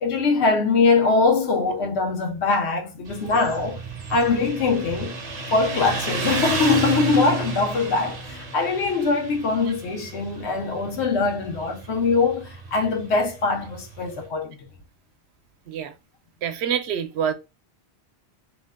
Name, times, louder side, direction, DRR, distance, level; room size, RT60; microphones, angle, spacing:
voice 1, 0.0-3.8 4.1-5.2 5.5-14.6, left 4 dB, 85° left, 1.0 m, -22 dB
Motorcycle, 3.1-14.2, right 4 dB, 45° right, 0.7 m, -32 dB
voice 2, 16.4-17.3, right 8 dB, 80° right, 0.8 m, -26 dB
2.8 x 2.1 x 3.3 m
omnidirectional pair, 1.1 m